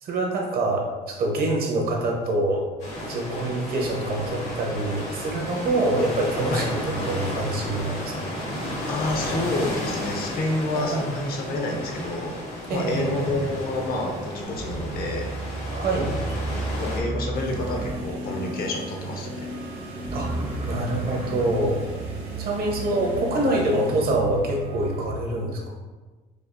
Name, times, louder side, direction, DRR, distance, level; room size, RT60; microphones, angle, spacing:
voice 1, 0.0-2.6 3.0-8.1 10.7-11.1 12.7-13.3 15.7-16.1 20.1-20.3 20.7-21.8 22.4-25.6, right 2 dB, 65° right, 0 dB, 0.9 m, -25 dB
sound 1, 2.8-17.0, left 1 dB, 80° left, 1.5 m, -33 dB
voice 2, 8.9-12.4 12.7-15.3 16.7-19.5, left 2 dB, 65° left, 2 dB, 0.8 m, -29 dB
sound 2, 12.9-25.1, right 2 dB, 35° right, 0.6 m, -34 dB
sound 3, 17.3-24.0, left 1 dB, 90° right, 1.1 m, -37 dB
4.9 x 2.4 x 2.6 m, 1.3 s
cardioid pair, 110°, 17 cm